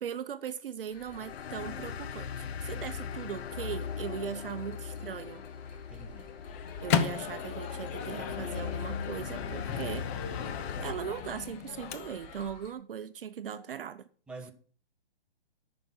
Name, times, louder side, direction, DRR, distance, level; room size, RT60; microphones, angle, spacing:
voice 1, 0.0-5.4 6.8-10.1 10.8-14.0, right 8 dB, 60° right, 0.8 m, -39 dB
sound 1, 0.9-12.7, left 3 dB, 45° left, 2.6 m, -49 dB
sound 2, 1.1-10.9, left 7 dB, 90° left, 0.6 m, -39 dB
voice 2, 5.9-6.4 14.3-14.5, right 3 dB, 5° right, 0.9 m, -46 dB
Microwave oven, 6.5-12.5, left 7 dB, 15° left, 0.4 m, -35 dB
8.9 x 5.8 x 7.6 m
hypercardioid pair, 140°, 31 cm